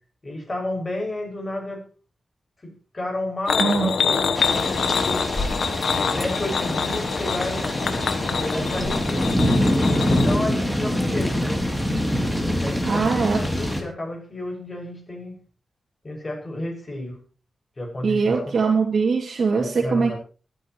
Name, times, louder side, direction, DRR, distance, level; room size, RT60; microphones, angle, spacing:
voice 1, 0.2-1.8 2.6-5.3 6.1-7.8 8.4-9.3 10.0-11.6 12.5-15.4 16.0-17.2 17.8-18.6 19.6-20.2, left 1 dB, 30° left, 1 dB, 6.2 m, -31 dB
sound 1, 3.5-10.4, left 6 dB, 85° left, 1.1 m, -25 dB
voice 2, 3.6-3.9 12.9-13.4 18.0-20.1, right 4 dB, 65° right, -2 dB, 2.5 m, -21 dB
sound 2, 4.4-13.8, left 1 dB, 10° left, 3.0 m, -25 dB
24.0 x 9.2 x 3.1 m, 0.37 s
wide cardioid pair, 95°, 0 cm